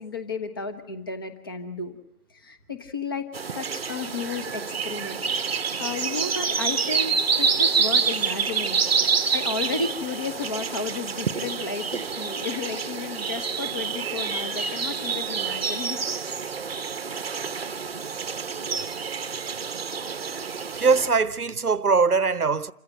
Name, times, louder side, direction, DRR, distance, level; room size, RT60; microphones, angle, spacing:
voice 1, 0.0-2.0 2.3-3.3 3.5-8.8 9.3-16.0, left 4 dB, 15° left, 0.8 m, -33 dB
sound 1, 3.3-21.1, right 5 dB, 45° right, 0.8 m, -27 dB
voice 2, 20.7-22.7, right 4 dB, 90° right, 0.9 m, -21 dB
27.5 x 15.5 x 7.7 m
figure-of-eight pair, 145°, 43 cm